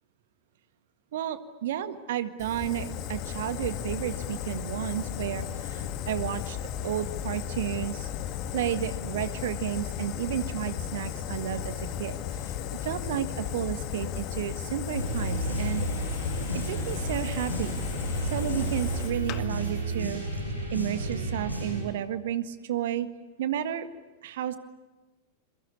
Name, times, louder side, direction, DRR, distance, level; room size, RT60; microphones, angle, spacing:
voice 1, 1.1-6.6 6.8-8.1 8.5-12.2 12.4-12.5 12.8-15.9 16.5-17.8 18.2-20.2 20.7-23.1 23.4-23.9 24.2-24.6, right 11 dB, 55° right, 10 dB, 1.7 m, -32 dB
Fire, 2.4-19.4, left 9 dB, 40° left, 1.9 m, -35 dB
sound 1, 14.9-21.8, right 2 dB, 85° left, 7.9 m, -32 dB
28.5 x 23.0 x 8.5 m, 1.2 s
figure-of-eight pair, 90°, 0 cm